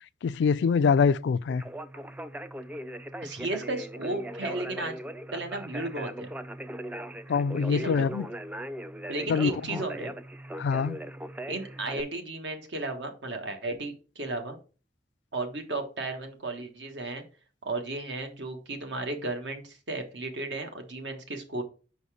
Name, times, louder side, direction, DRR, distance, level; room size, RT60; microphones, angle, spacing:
voice 1, 0.2-1.6 7.3-8.3 9.3-9.8 10.6-11.0, left 5 dB, 70° left, 0.3 m, -24 dB
Conversation, 1.5-12.0, right 1 dB, 10° right, 0.3 m, -39 dB
voice 2, 3.2-4.9 5.3-6.3 7.7-8.1 9.1-10.1 11.5-14.6 15.3-17.2 17.6-21.6, right 2 dB, 80° right, 1.4 m, -34 dB
5.7 x 4.1 x 4.8 m
head